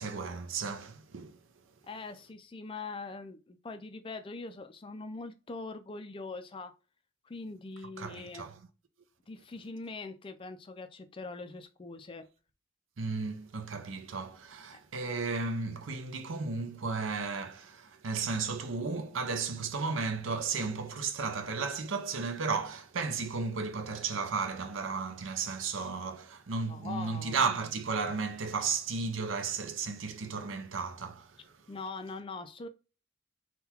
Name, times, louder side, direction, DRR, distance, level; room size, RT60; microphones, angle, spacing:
voice 1, 0.0-1.4 8.0-8.6 13.0-31.6, right 4 dB, 65° right, 0.6 m, -34 dB
voice 2, 1.9-6.7 7.2-8.5 9.3-12.2 14.7-14.8 26.7-27.4 31.7-32.7, left 3 dB, 25° left, 0.4 m, -42 dB
3.8 x 2.3 x 4.2 m
head